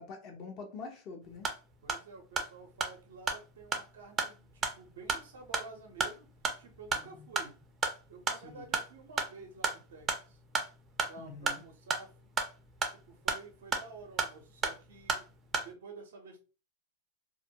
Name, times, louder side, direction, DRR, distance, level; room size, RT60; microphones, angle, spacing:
voice 1, 0.0-1.5 6.9-7.4 8.4-8.7 11.2-11.6, left 4 dB, 45° left, 0.8 m, -46 dB
sound 1, 1.2-15.7, right 5 dB, 25° right, 0.5 m, -36 dB
voice 2, 1.8-6.3 6.6-7.6 8.1-10.4 11.1-12.1 12.9-15.3 15.6-16.4, right 4 dB, 75° right, 0.6 m, -50 dB
2.4 x 2.1 x 2.7 m
hypercardioid pair, 105°, 0 cm